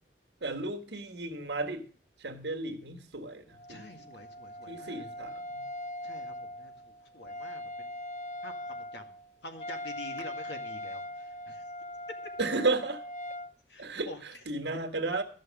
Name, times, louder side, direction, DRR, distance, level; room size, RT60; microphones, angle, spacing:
voice 1, 0.4-1.8 2.2-3.9 4.7-5.6 12.4-13.0 13.8-15.2, right 3 dB, 75° right, 5 dB, 1.6 m, -33 dB
Wind instrument woodwind instrument, 3.5-13.5, left 1 dB, 40° left, 0.6 m, -41 dB
voice 2, 3.7-5.0 6.0-7.9 8.4-9.1 9.4-11.6 13.7-14.2, left 1 dB, 75° left, 5 dB, 2.0 m, -47 dB
13.0 x 6.3 x 7.4 m, 0.43 s
head